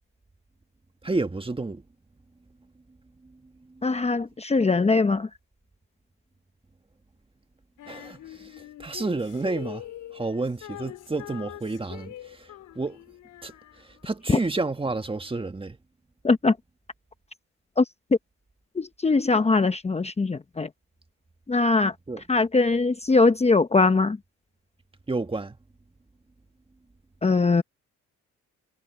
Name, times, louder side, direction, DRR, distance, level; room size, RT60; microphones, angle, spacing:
voice 1, 1.0-1.8 3.2-3.9 7.8-9.9 10.1-13.0 13.4-15.8 22.1-22.2 25.1-25.6, right 3 dB, 15° right, 1.7 m, -31 dB
voice 2, 3.8-5.3 16.2-16.6 17.8-17.9 18.8-20.7 21.5-21.9 22.3-24.2 27.2-27.6, left 3 dB, 20° left, 1.0 m, -21 dB
Female singing, 7.8-14.3, left 13 dB, 85° left, 4.7 m, -43 dB
cardioid pair, 90°, 30 cm